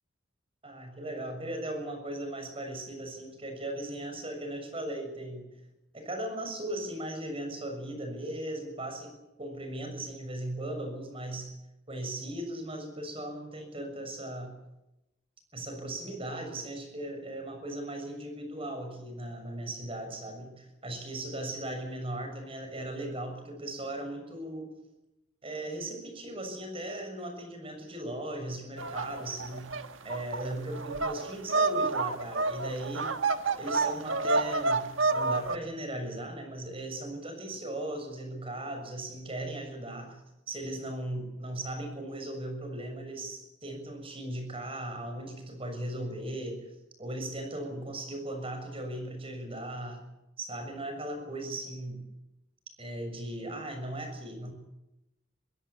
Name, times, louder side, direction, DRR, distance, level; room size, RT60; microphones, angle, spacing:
voice 1, 0.6-5.5 5.9-9.1 9.4-11.5 11.9-14.5 15.5-24.7 25.4-29.7 30.0-33.1 33.6-34.8 35.1-40.2 40.5-46.6 47.0-50.0 50.4-52.0 52.8-54.5, right 1 dB, 30° right, 5 dB, 6.8 m, -37 dB
sound 1, 28.8-35.6, right 3 dB, 85° right, 1.5 m, -29 dB
24.5 x 16.5 x 8.7 m, 0.92 s
head